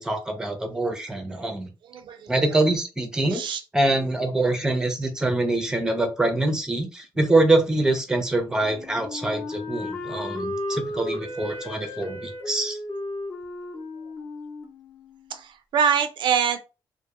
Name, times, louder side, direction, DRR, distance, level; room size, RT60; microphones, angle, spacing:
voice 1, 0.0-1.7 2.3-3.4 3.7-12.8, right 2 dB, 10° right, 5 dB, 0.5 m, -24 dB
voice 2, 1.8-2.6 3.3-3.6 15.3-16.6, right 7 dB, 70° right, 8 dB, 0.4 m, -25 dB
Wind instrument woodwind instrument, 8.6-15.4, left 1 dB, 30° left, 0.8 m, -34 dB
2.2 x 2.1 x 2.8 m, 0.30 s
cardioid pair, 110°, 9 cm